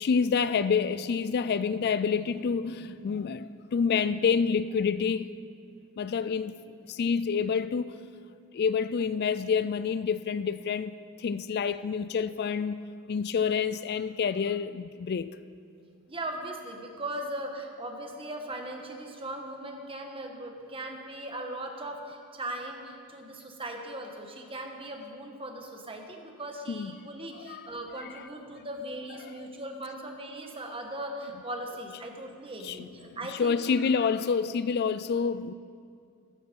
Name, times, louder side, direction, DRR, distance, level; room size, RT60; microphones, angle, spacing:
voice 1, 0.0-5.3 6.0-6.6 6.9-8.0 8.5-12.8 13.1-15.4 26.7-26.9 27.4-27.6 32.6-32.8 33.3-35.5, left 6 dB, 45° left, 0.3 m, -28 dB
voice 2, 16.1-33.8, right 1 dB, 25° right, 1.5 m, -39 dB
14.5 x 14.5 x 5.4 m
head